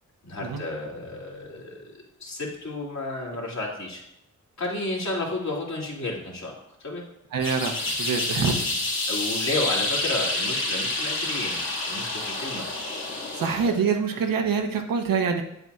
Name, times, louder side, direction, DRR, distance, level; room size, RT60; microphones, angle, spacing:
voice 1, 0.2-4.0 4.6-6.5 6.8-7.0 9.1-11.6 11.8-12.7 13.4-13.8, left 2 dB, 55° left, -4 dB, 2.6 m, -32 dB
voice 2, 7.3-8.6 13.3-15.4, right 5 dB, 90° right, 4 dB, 1.0 m, -25 dB
sound 1, 7.4-13.8, left 2 dB, 80° left, 1.9 m, -28 dB
8.1 x 8.0 x 2.4 m, 0.83 s
cardioid pair, 65°, 33 cm